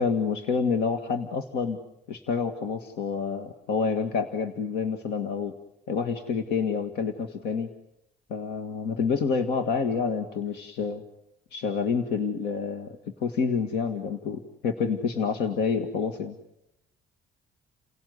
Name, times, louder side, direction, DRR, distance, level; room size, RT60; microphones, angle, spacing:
voice 1, 0.0-1.8 2.1-5.5 5.9-7.7 8.3-11.0 11.5-16.4, left 5 dB, 80° left, 8 dB, 1.9 m, -28 dB
30.0 x 17.5 x 9.6 m, 0.86 s
cardioid pair, 110°, 17 cm